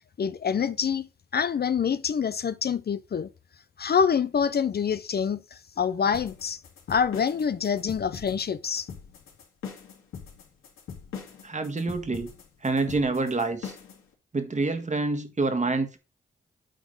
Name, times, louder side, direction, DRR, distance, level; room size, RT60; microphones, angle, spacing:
voice 1, 0.2-1.1 1.3-3.3 3.8-6.6 6.9-8.9, left 7 dB, 50° left, 0.6 m, -26 dB
sound 1, 6.1-14.0, left 7 dB, 90° left, 2.4 m, -41 dB
voice 2, 11.4-12.3 12.6-13.7 14.3-16.0, right 3 dB, 35° right, 1.6 m, -27 dB
9.1 x 3.8 x 5.3 m
cardioid pair, 60°, 21 cm